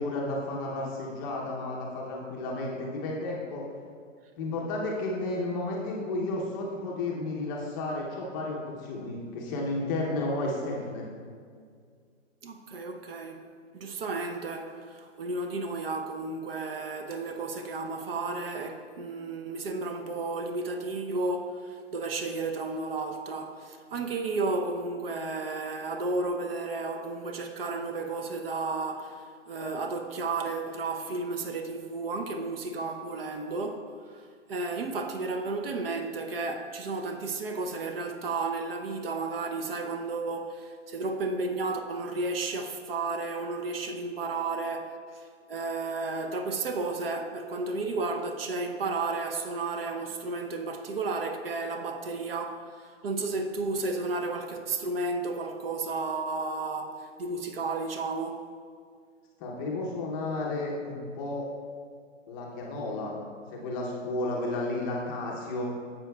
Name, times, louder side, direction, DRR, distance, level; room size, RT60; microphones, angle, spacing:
voice 1, 0.0-3.7 4.4-11.1 59.4-61.5 62.3-63.2 63.4-65.7, left 2 dB, 15° left, 0.6 m, -32 dB
voice 2, 12.4-13.4 13.7-58.5, right 3 dB, 50° right, 0.7 m, -33 dB
11.5 x 7.3 x 2.2 m
hypercardioid pair, 145°, 38 cm